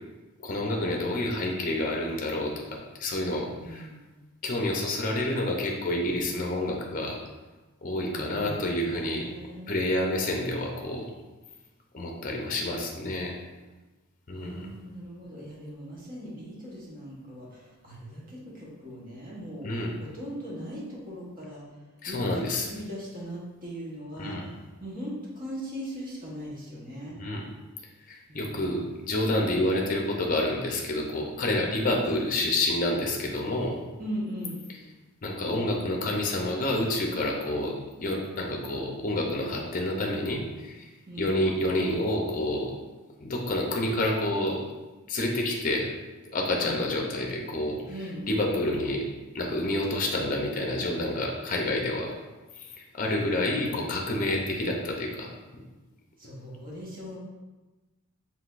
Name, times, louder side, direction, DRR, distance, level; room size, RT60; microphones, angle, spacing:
voice 1, 0.4-2.6 3.0-3.9 4.4-7.2 7.8-9.3 9.7-11.1 11.9-13.3 14.3-14.7 19.6-19.9 22.0-22.7 24.2-24.5 27.2-27.5 28.1-33.8 35.2-37.7 38.0-40.9 41.2-42.7 43.2-44.6 45.1-45.9 46.3-47.8 48.3-49.0 49.3-52.1 52.9-55.6, left 1 dB, 40° left, 0 dB, 0.6 m, -28 dB
voice 2, 3.5-4.0 8.1-9.7 14.3-21.7 22.1-24.4 24.8-27.2 28.3-28.9 32.0-32.2 34.0-34.9 41.1-41.4 46.6-46.9 47.9-48.3 53.0-53.2 56.2-57.2, equal, 40° right, -5 dB, 1.1 m, -39 dB
4.8 x 3.4 x 2.5 m, 1.2 s
head